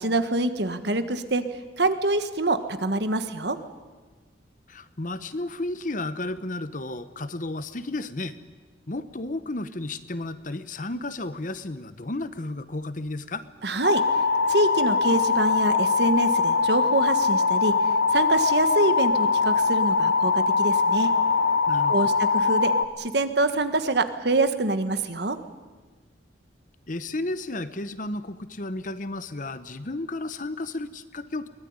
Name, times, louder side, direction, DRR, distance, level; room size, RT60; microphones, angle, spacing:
voice 1, 0.0-1.4 1.8-3.6 13.6-14.0 14.5-17.7 18.1-21.1 21.9-22.7 23.0-25.4, right 2 dB, 60° right, 10 dB, 1.5 m, -25 dB
voice 2, 4.7-8.4 8.9-13.4 21.7-22.2 26.9-31.5, left 2 dB, 45° left, 13 dB, 1.0 m, -33 dB
sound 1, 13.8-22.8, left 4 dB, 65° left, 1.2 m, -22 dB
23.0 x 20.0 x 9.6 m, 1.4 s
head